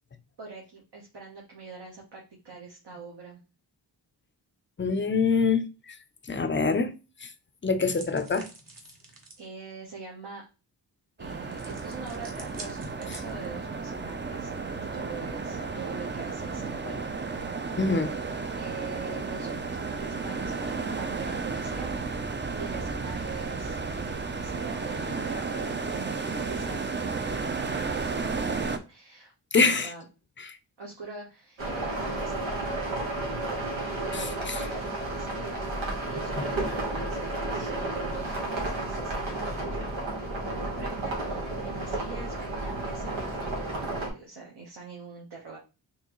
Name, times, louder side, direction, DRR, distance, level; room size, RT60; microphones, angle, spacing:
voice 1, 0.4-3.4 9.4-10.4 11.2-17.0 18.6-21.9 22.3-30.0 30.8-32.8 34.0-35.7 36.1-39.7 40.4-45.6, right 4 dB, 65° right, 1.3 m, -43 dB
voice 2, 4.8-5.9 6.3-6.9 7.2-7.3 7.6-8.5 17.8-18.1 29.5-29.9 30.4-30.6 34.5-34.6, left 4 dB, 25° left, 0.6 m, -25 dB
sound 1, 7.9-9.5 11.5-13.6, right 2 dB, 50° right, 1.1 m, -47 dB
sound 2, 11.2-28.8, right 4 dB, 25° right, 0.5 m, -33 dB
sound 3, 31.6-44.1, right 2 dB, 90° right, 1.4 m, -32 dB
4.4 x 3.1 x 3.1 m
cardioid pair, 60°, 44 cm